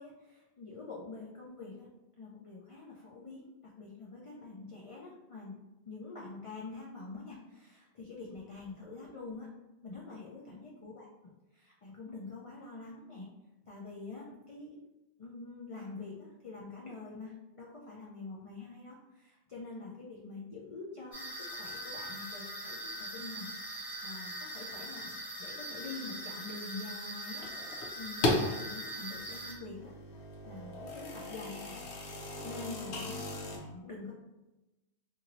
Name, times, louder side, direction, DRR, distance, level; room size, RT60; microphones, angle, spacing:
voice 1, 0.0-1.9 2.2-3.5 3.7-5.6 5.9-9.5 9.8-11.1 11.5-13.3 13.7-14.8 15.2-23.5 24.0-27.4 27.9-29.9 30.4-31.9 32.4-33.2 33.5-34.1, left 3 dB, 55° left, -4 dB, 0.3 m, -46 dB
sound 1, 21.1-29.5, right 1 dB, 30° left, 1.1 m, -42 dB
sound 2, 27.4-28.6 29.1-33.6, left 2 dB, 80° left, 0.9 m, -36 dB
2.6 x 2.6 x 2.9 m, 1.0 s
omnidirectional pair, 1.1 m